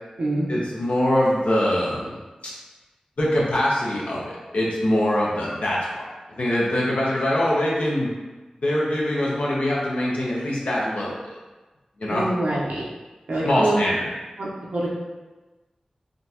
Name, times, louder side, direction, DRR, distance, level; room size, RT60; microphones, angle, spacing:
voice 1, 0.5-2.2 3.2-6.0 6.3-8.1 8.6-11.2 12.0-12.2 13.4-14.1, left 1 dB, 75° left, -6 dB, 0.7 m, -23 dB
voice 2, 12.1-12.8 13.3-13.8 14.4-15.0, right 1 dB, 85° right, -6 dB, 0.8 m, -25 dB
3.7 x 2.3 x 2.7 m, 1.2 s
wide cardioid pair, 60°, 2 cm